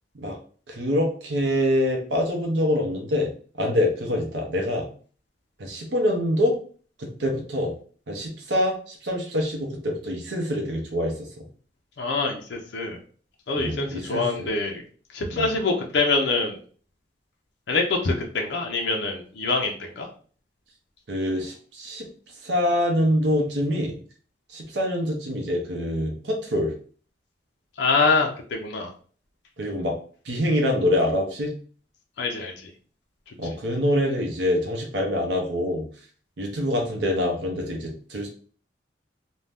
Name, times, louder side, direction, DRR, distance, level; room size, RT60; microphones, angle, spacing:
voice 1, 0.7-3.3 3.5-4.9 5.6-6.5 7.0-7.7 8.1-11.4 13.6-14.5 15.3-15.5 21.1-22.1 22.4-24.0 24.5-26.7 29.6-29.9 30.3-31.6 33.4-35.9 36.4-38.3, left 1 dB, 75° right, 1 dB, 0.6 m, -25 dB
voice 2, 12.0-13.0 13.5-14.7 15.1-16.6 17.7-20.1 27.8-28.9 32.2-32.5, left 3 dB, 75° left, 1 dB, 0.5 m, -25 dB
2.6 x 2.1 x 3.3 m, 0.43 s
head